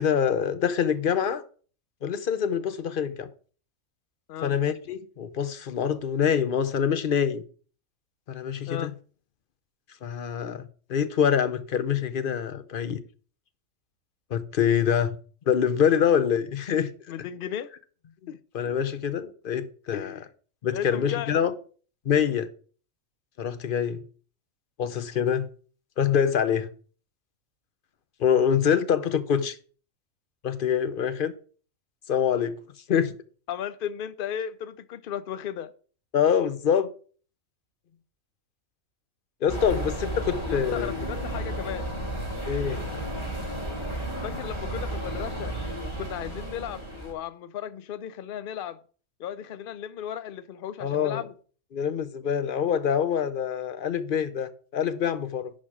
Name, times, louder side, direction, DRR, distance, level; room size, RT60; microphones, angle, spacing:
voice 1, 0.0-1.4 2.0-3.3 4.4-7.4 8.3-8.9 10.0-10.6 10.9-13.0 14.3-15.2 15.5-16.9 18.2-20.1 20.6-21.5 22.0-22.5 23.4-24.0 24.8-25.5 26.0-26.7 28.2-29.5 30.4-31.3 32.1-32.6 32.9-33.1 36.1-36.9 39.4-40.9 42.5-42.8 50.8-51.2 51.7-55.5, left 8 dB, 45° left, 0.7 m, -25 dB
voice 2, 17.1-17.7 18.3-18.4 19.9-20.2 20.7-21.4 33.5-35.7 40.5-41.9 44.2-45.6 45.8-48.8 49.2-51.3, left 9 dB, 85° left, 0.4 m, -35 dB
sound 1, 39.5-47.1, right 1 dB, 20° left, 2.7 m, -33 dB
11.0 x 4.3 x 6.1 m
omnidirectional pair, 1.5 m